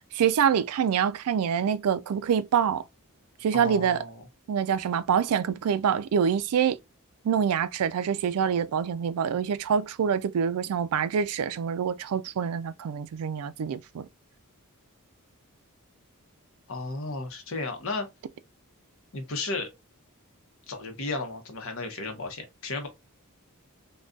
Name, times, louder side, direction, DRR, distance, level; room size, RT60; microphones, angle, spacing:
voice 1, 0.1-2.8 3.4-4.0 4.5-6.8 7.2-14.1, right 7 dB, 80° right, 0.3 m, -26 dB
voice 2, 3.5-4.2 16.7-18.1 19.1-19.7 20.7-22.9, left 3 dB, 60° left, 0.8 m, -34 dB
3.7 x 2.3 x 2.3 m
head